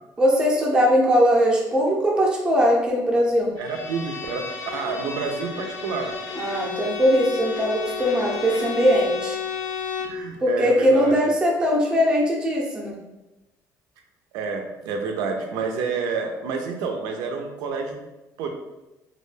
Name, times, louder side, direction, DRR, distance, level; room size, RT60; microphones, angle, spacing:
voice 1, 0.2-3.5 6.4-9.4 10.4-13.0, equal, 15° right, -3 dB, 0.5 m, -20 dB
Bowed string instrument, 3.6-10.2, left 6 dB, 70° left, 0.4 m, -32 dB
voice 2, 3.6-4.5 4.7-6.1 10.0-11.2 14.3-18.0 18.4-18.5, right 5 dB, 90° right, 3 dB, 0.4 m, -29 dB
2.3 x 2.1 x 3.1 m, 1.0 s
cardioid pair, 150°, 7 cm